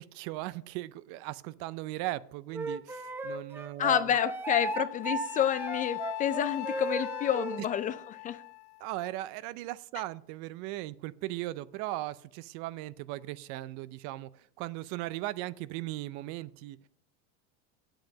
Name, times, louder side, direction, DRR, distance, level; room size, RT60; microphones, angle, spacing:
voice 1, 0.0-4.2 8.8-16.8, right 17 dB, 55° right, 0.5 m, -38 dB
Wind instrument woodwind instrument, 2.5-7.6, right 2 dB, 5° right, 0.7 m, -35 dB
voice 2, 3.8-8.4, left 9 dB, 25° left, 0.3 m, -29 dB
Wind instrument woodwind instrument 2, 4.7-9.1, left 22 dB, 85° left, 0.5 m, -40 dB
8.7 x 7.8 x 5.2 m
supercardioid pair, 125°, 33 cm